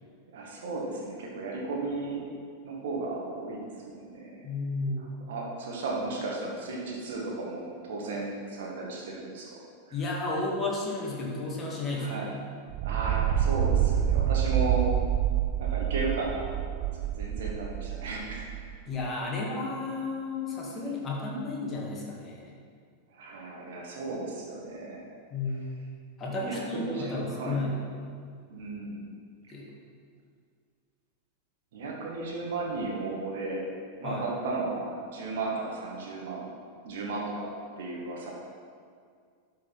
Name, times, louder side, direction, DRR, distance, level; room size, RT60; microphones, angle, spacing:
voice 1, 0.3-2.2 2.6-4.4 5.3-9.5 11.9-12.3 12.8-14.9 15.6-16.4 16.8-16.9 17.1-18.5 23.1-25.1 26.3-27.7 28.5-29.1 31.7-33.7 34.0-36.4 36.8-37.5 37.8-38.3, right 3 dB, 55° right, -2 dB, 1.9 m, -34 dB
voice 2, 4.4-5.2 9.9-12.3 18.9-22.5 25.3-25.8 26.2-27.8 29.5-29.7 34.0-34.2, left 2 dB, 25° left, -3 dB, 2.1 m, -32 dB
sound 1, 12.7-18.8, right 11 dB, 35° right, 0.4 m, -27 dB
12.0 x 5.3 x 4.2 m, 2.1 s
figure-of-eight pair, 90°, 0 cm